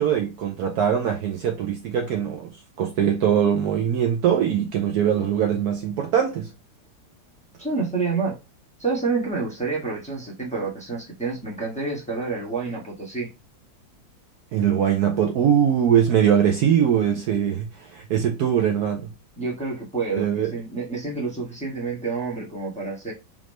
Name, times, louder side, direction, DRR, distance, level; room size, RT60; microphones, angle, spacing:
voice 1, 0.0-2.5 2.8-6.5 14.5-19.1 20.1-20.5, right 9 dB, 70° right, 1.0 m, -22 dB
voice 2, 7.6-8.4 8.8-13.3 19.4-23.1, right 4 dB, 5° left, 1.0 m, -28 dB
3.7 x 3.5 x 3.1 m
omnidirectional pair, 2.0 m